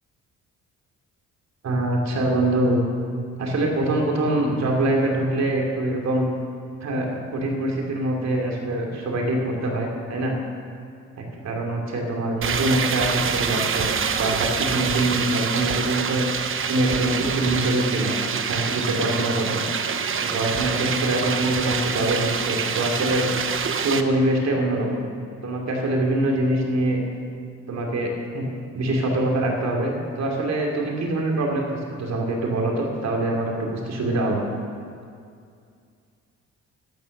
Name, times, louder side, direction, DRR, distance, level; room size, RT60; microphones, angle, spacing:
voice 1, 1.6-2.8 3.4-6.3 6.8-10.3 11.2-13.9 14.1-16.3 16.7-18.1 18.5-19.6 20.2-23.3 23.8-25.0 25.4-27.0 27.7-28.5 28.7-34.5, right 1 dB, 60° right, 0 dB, 3.0 m, -24 dB
sound 1, 12.4-24.0, right 6 dB, 45° right, 0.9 m, -26 dB
12.5 x 10.5 x 6.7 m, 2.3 s
cardioid pair, 90°, 30 cm